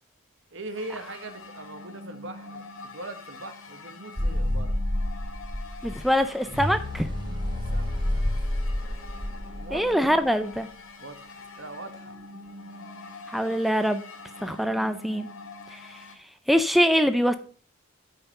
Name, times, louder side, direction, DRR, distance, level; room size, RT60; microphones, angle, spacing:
voice 1, 0.5-2.6 2.9-4.7 7.7-9.0 9.3-10.1 11.0-12.2, right 2 dB, 65° right, 9 dB, 1.5 m, -41 dB
sound 1, 0.7-16.2, left 2 dB, 85° left, 2.2 m, -44 dB
sound 2, 4.2-10.2, left 1 dB, 20° right, 3.6 m, -29 dB
voice 2, 5.8-7.1 9.7-10.7 13.3-14.0 14.4-15.3 15.7-16.0 16.5-17.4, equal, ahead, 9 dB, 0.5 m, -23 dB
9.4 x 5.8 x 5.4 m, 0.43 s
head